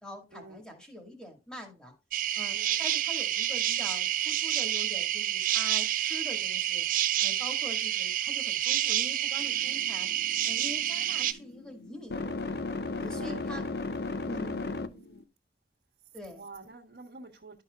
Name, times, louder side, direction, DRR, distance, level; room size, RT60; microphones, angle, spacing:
voice 1, 0.0-1.9 2.4-6.9 7.2-10.1 10.4-12.6 13.0-13.7 14.2-15.0 16.1-16.5, left 1 dB, 5° left, 1.9 m, -44 dB
sound 1, 2.1-11.3, right 12 dB, 50° right, 0.4 m, -29 dB
sound 2, 9.4-15.2, left 3 dB, 60° left, 0.6 m, -36 dB
voice 2, 13.1-13.7 14.3-15.3 16.3-17.6, right 3 dB, 70° right, 1.4 m, -48 dB
12.0 x 5.6 x 2.4 m
head